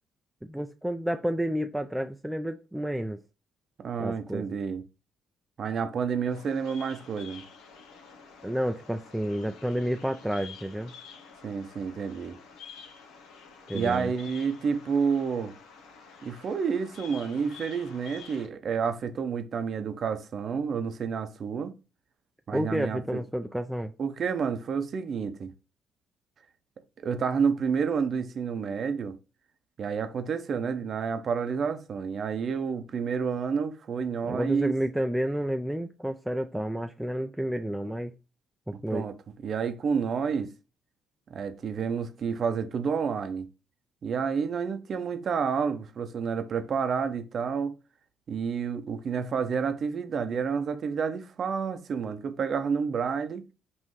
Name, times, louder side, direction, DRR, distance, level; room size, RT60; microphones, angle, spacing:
voice 1, 0.4-3.2 4.0-4.4 8.4-10.9 13.7-14.1 22.5-23.9 34.3-38.1 38.7-39.1, equal, 5° right, 0.4 m, -30 dB
voice 2, 3.8-4.8 5.6-7.4 11.4-12.4 13.7-15.5 16.2-21.7 22.5-23.2 24.0-25.5 27.0-29.2 29.8-34.7 38.9-39.1 39.4-40.5 41.3-43.5 44.0-47.7 48.3-53.4, right 6 dB, 55° right, 0.6 m, -29 dB
Bird vocalization bird call bird song, 6.3-18.5, left 6 dB, 80° left, 0.8 m, -49 dB
5.4 x 2.6 x 3.1 m
supercardioid pair, 60°, 0 cm